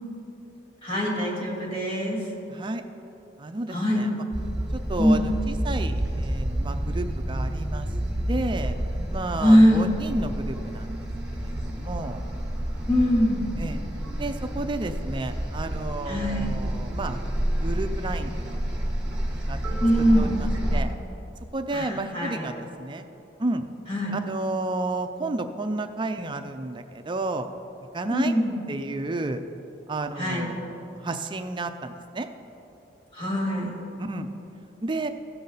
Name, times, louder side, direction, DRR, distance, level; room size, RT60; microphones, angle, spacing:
voice 1, 0.8-2.2 3.7-4.0 5.0-5.3 9.4-9.9 12.9-13.5 16.1-16.5 19.8-20.3 21.7-22.5 23.9-24.1 28.1-28.5 30.2-30.5 33.1-33.7, equal, 30° left, -4 dB, 2.5 m, -22 dB
voice 2, 2.5-2.8 3.4-4.2 4.7-7.9 8.3-8.8 9.1-12.2 13.6-13.8 14.2-17.2 17.6-18.9 19.5-19.6 20.2-20.9 21.5-23.0 23.4-23.6 24.1-27.5 27.9-28.3 28.7-29.4 29.9-32.3 34.0-34.3 34.8-35.1, right 2 dB, 25° right, 7 dB, 0.4 m, -32 dB
sound 1, 4.3-20.8, right 1 dB, 5° right, 1.4 m, -29 dB
16.0 x 6.9 x 4.0 m, 2.9 s
head